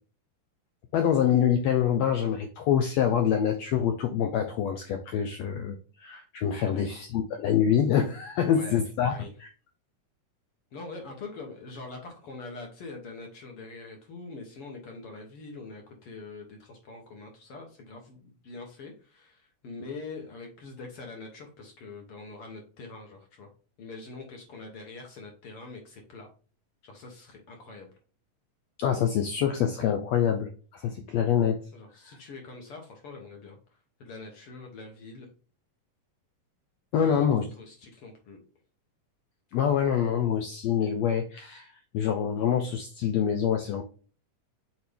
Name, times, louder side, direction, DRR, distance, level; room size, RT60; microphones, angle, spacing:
voice 1, 0.9-9.1 9.4-9.5 28.8-31.6 32.0-32.1 36.9-37.4 39.5-43.8, left 8 dB, 85° left, 6 dB, 1.5 m, -26 dB
voice 2, 8.4-9.3 10.7-23.5 23.8-26.3 26.8-27.9 31.7-33.6 34.0-35.3 37.0-37.3 37.6-38.4, left 3 dB, 60° left, 2 dB, 1.7 m, -44 dB
6.3 x 4.4 x 3.4 m, 0.37 s
omnidirectional pair, 3.8 m